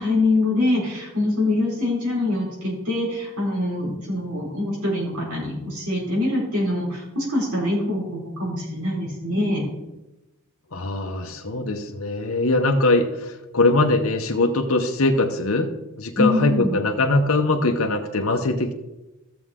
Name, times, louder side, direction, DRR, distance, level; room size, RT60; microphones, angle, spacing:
voice 1, 0.0-9.6 16.1-16.8, left 2 dB, 85° right, -4 dB, 4.3 m, -24 dB
voice 2, 10.7-15.7 16.0-18.7, left 2 dB, 70° left, 3 dB, 0.9 m, -21 dB
15.5 x 6.9 x 3.7 m, 0.99 s
head